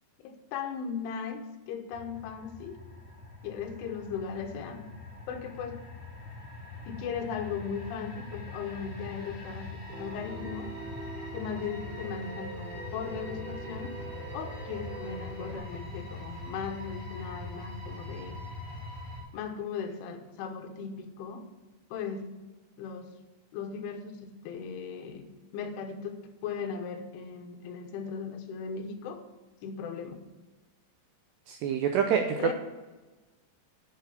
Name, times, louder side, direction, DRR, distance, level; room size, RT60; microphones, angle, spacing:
voice 1, 0.2-2.8 3.4-4.9 5.3-5.8 6.9-10.7 11.3-14.0 14.3-18.4 19.3-21.5 21.9-22.3 22.8-23.1 23.5-29.2 29.6-30.2 32.4-32.5, left 6 dB, 80° left, 5 dB, 3.4 m, -37 dB
sound 1, 1.9-19.2, left 2 dB, 35° left, 4.8 m, -42 dB
Piano, 9.9-15.6, right 2 dB, 60° right, 3.7 m, -43 dB
voice 2, 31.5-32.5, right 7 dB, 85° right, 4 dB, 2.5 m, -26 dB
10.5 x 5.7 x 6.9 m, 1.2 s
omnidirectional pair, 5.6 m